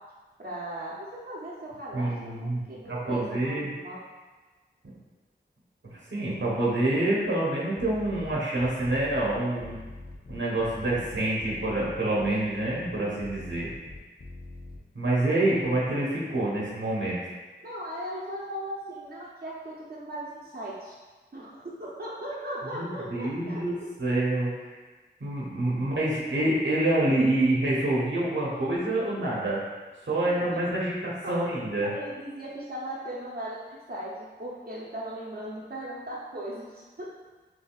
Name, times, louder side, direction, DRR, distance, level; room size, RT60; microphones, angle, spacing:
voice 1, 0.4-4.0 15.5-15.6 17.6-20.9 21.3-23.6 29.2-29.3 30.5-30.6 31.2-31.3 31.8-37.1, right 1 dB, 55° right, -7 dB, 0.8 m, -38 dB
voice 2, 1.9-3.7 6.1-9.8 10.3-13.7 14.9-17.1 22.7-24.7 25.2-29.6 30.1-31.9, right 1 dB, 90° right, -6 dB, 1.1 m, -27 dB
sound 1, 7.8-14.8, left 2 dB, 55° left, 0.6 m, -43 dB
6.1 x 2.7 x 2.4 m, 1.3 s
wide cardioid pair, 60°, 19 cm